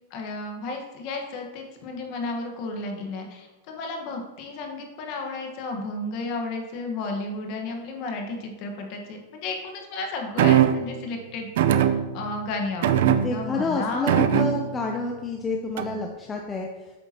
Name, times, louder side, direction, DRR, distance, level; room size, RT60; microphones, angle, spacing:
voice 1, 0.1-14.3, left 3 dB, 35° left, 3 dB, 1.2 m, -33 dB
sound 1, 10.4-11.0 11.6-12.4 12.8-13.6 14.1-14.9 15.8-16.1, right 10 dB, 60° right, 0.4 m, -21 dB
voice 2, 13.2-16.7, left 3 dB, 15° left, 1 dB, 0.5 m, -29 dB
8.5 x 6.7 x 2.8 m, 1.1 s
supercardioid pair, 170°, 0 cm